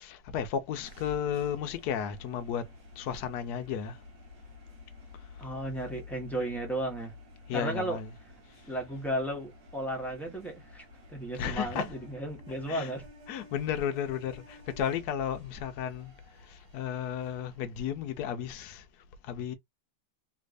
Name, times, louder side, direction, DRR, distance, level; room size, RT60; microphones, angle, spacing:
voice 1, 0.0-2.7 3.0-4.0 7.5-8.1 11.3-11.9 12.7-12.9 13.3-16.1 16.5-18.8 19.2-19.5, left 8 dB, 70° left, 0.9 m, -33 dB
sound 1, 0.8-18.2, left 4 dB, 60° right, 1.9 m, -51 dB
voice 2, 5.4-7.1 7.5-8.0 8.7-13.0, right 1 dB, ahead, 0.6 m, -34 dB
3.4 x 3.2 x 2.5 m
omnidirectional pair, 2.2 m